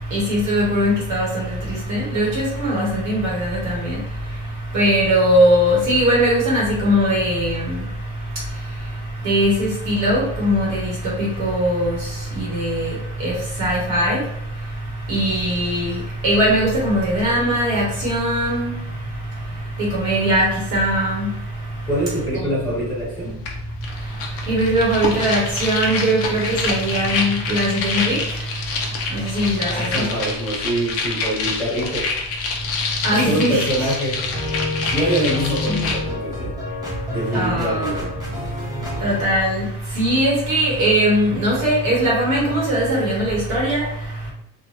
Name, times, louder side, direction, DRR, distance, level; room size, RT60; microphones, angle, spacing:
voice 1, 0.1-4.0 4.3-4.4 4.7-7.9 8.3-8.9 9.2-14.2 15.1-18.8 19.8-21.4 22.3-22.7 24.1-28.4 29.1-30.1 33.0-33.9 35.1-35.3 35.7-35.9 37.3-38.0 39.0-44.3, equal, 45° right, 1.0 m, -20 dB
voice 2, 21.9-23.4 29.1-29.2 29.7-32.1 33.1-34.3 34.9-36.5 37.1-38.1, right 1 dB, 10° left, 1.4 m, -25 dB
sound 1, 23.5-23.6 23.8-36.0, left 4 dB, 35° left, 0.4 m, -27 dB
sound 2, 34.1-39.2, left 2 dB, 10° right, 0.5 m, -29 dB
3.1 x 2.1 x 2.8 m
cardioid pair, 170°, 41 cm